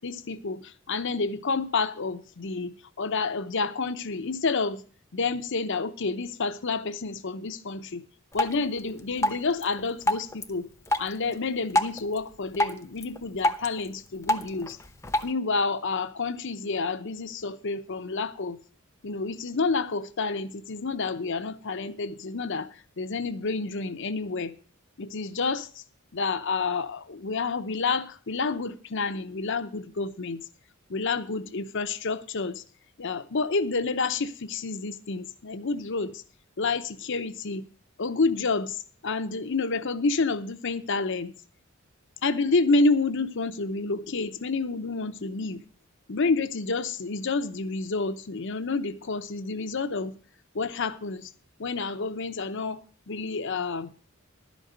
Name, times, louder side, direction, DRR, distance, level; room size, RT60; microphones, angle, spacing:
voice 1, 0.0-4.8 5.1-8.0 8.3-10.7 11.0-14.8 15.2-18.6 19.0-24.5 25.0-25.8 26.1-30.4 30.9-32.6 33.0-36.2 36.6-37.7 38.0-41.3 42.2-45.6 46.1-50.2 50.5-51.3 51.6-53.9, left 4 dB, 60° left, 0.8 m, -29 dB
Drip, 8.3-15.3, left 1 dB, 15° left, 0.8 m, -30 dB
12.0 x 5.3 x 7.9 m
head